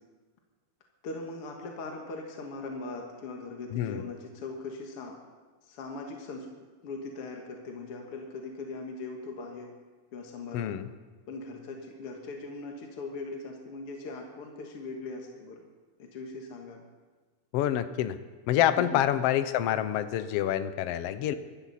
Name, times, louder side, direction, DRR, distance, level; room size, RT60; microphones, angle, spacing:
voice 1, 1.0-5.2 5.6-6.5 6.8-9.7 10.1-10.7 11.3-15.6 16.0-16.8 18.8-19.1 21.3-21.4, left 3 dB, 55° left, 1 dB, 2.3 m, -40 dB
voice 2, 3.7-4.0 10.5-10.9 17.5-18.2 18.5-21.3, left 11 dB, 75° left, 12 dB, 1.5 m, -27 dB
24.0 x 13.5 x 4.2 m, 1.3 s
omnidirectional pair, 3.3 m